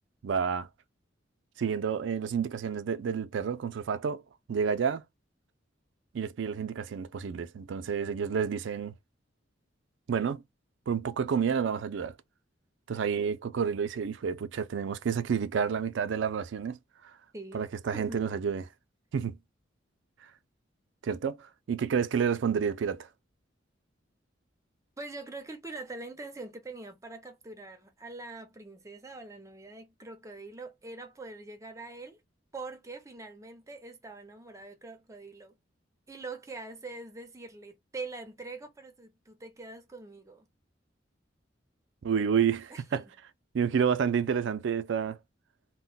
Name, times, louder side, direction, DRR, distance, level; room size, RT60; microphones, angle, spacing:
voice 1, 0.2-0.7 1.6-4.2 4.5-5.0 6.1-8.9 10.1-10.4 10.9-12.2 12.9-17.1 17.5-18.6 19.1-19.4 21.0-23.1 42.0-43.0 43.5-45.2, right 7 dB, 70° right, 0.4 m, -29 dB
voice 2, 17.9-18.2 25.0-32.2 32.5-35.5 36.1-40.5 42.7-43.1, right 3 dB, 15° right, 0.6 m, -43 dB
2.1 x 2.1 x 3.8 m
head